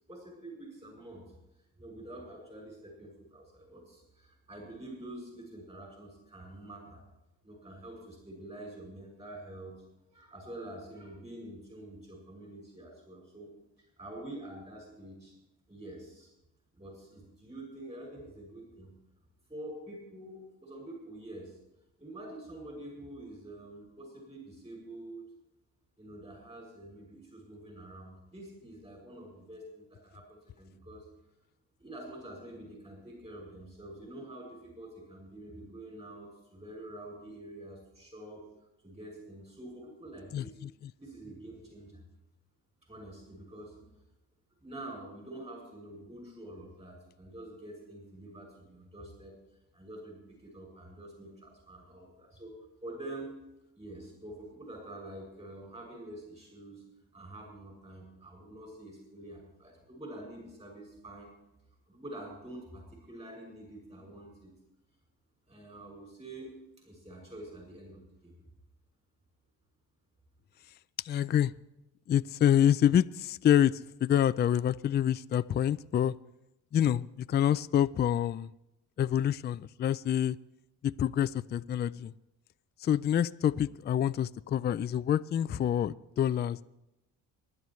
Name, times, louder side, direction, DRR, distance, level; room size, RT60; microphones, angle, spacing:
voice 1, 0.1-1.3 1.8-7.0 7.4-9.7 10.1-13.5 14.0-15.3 15.7-16.3 16.7-18.9 19.5-21.6 22.0-25.2 26.0-31.1 31.8-38.4 38.8-40.6 41.0-42.0 42.9-43.9 44.6-49.3 49.7-53.3 53.7-56.8 57.1-61.3 61.9-64.5 65.5-68.3, right 1 dB, 20° right, -1 dB, 6.7 m, -47 dB
voice 2, 40.3-40.9 71.0-71.5 72.1-76.1 76.7-78.5 79.0-80.4 80.8-82.1 82.8-86.6, left 10 dB, 30° left, 14 dB, 0.4 m, -27 dB
24.0 x 11.0 x 3.2 m, 0.91 s
cardioid pair, 85°, 34 cm